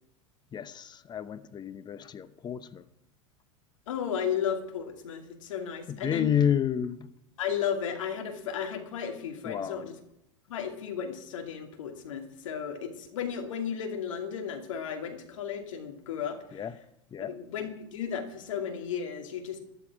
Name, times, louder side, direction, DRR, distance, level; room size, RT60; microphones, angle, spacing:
voice 1, 0.5-2.9 5.9-7.1 9.4-9.9 16.5-16.8 17.1-17.3, left 9 dB, 25° left, 14 dB, 0.9 m, -30 dB
voice 2, 3.9-6.3 7.4-9.9 10.5-16.6 17.2-19.6, left 8 dB, 75° left, 5 dB, 2.4 m, -34 dB
14.5 x 11.0 x 4.8 m, 0.77 s
hypercardioid pair, 95°, 17 cm